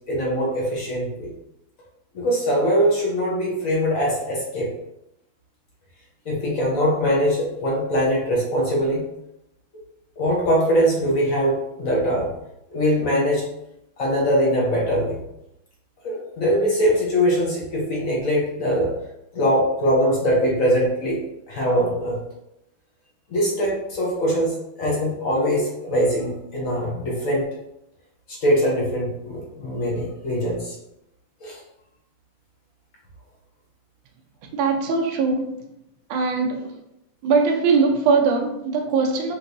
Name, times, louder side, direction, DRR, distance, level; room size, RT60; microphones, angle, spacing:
voice 1, 0.1-1.3 2.1-4.7 6.3-9.0 10.2-12.3 12.7-13.5 14.0-15.2 16.0-18.9 19.3-21.2 21.5-22.2 23.3-27.5 28.3-30.7 31.4-31.6, equal, 50° left, -3 dB, 1.1 m, -22 dB
voice 2, 34.5-35.6 36.1-36.7 37.2-39.3, right 4 dB, 75° right, 2 dB, 1.4 m, -21 dB
4.7 x 3.1 x 2.6 m, 0.84 s
omnidirectional pair, 2.2 m